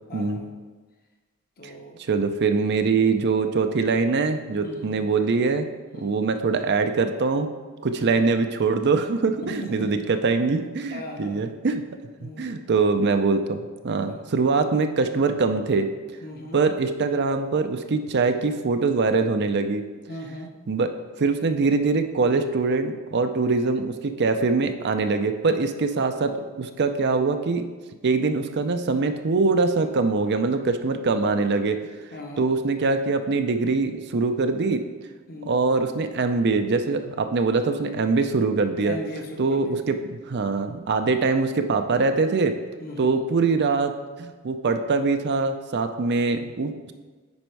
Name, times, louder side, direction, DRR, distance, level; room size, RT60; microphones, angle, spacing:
voice 1, 0.1-0.5 1.6-2.0 4.6-5.0 5.9-6.2 8.0-8.2 9.5-9.9 10.9-11.4 12.2-12.6 14.1-14.2 16.2-16.6 20.1-20.5 32.1-32.5 35.3-35.6 38.8-39.8 42.8-43.2, left 1 dB, 45° left, 1 dB, 1.1 m, -38 dB
voice 2, 2.1-5.7 6.0-7.5 7.8-11.8 12.2-15.9 16.5-19.8 20.7-27.7 28.0-31.8 32.4-34.8 35.4-39.0 39.4-42.5 43.0-43.9 44.2-46.9, right 4 dB, 50° right, 7 dB, 0.5 m, -23 dB
9.5 x 4.4 x 4.6 m, 1.3 s
head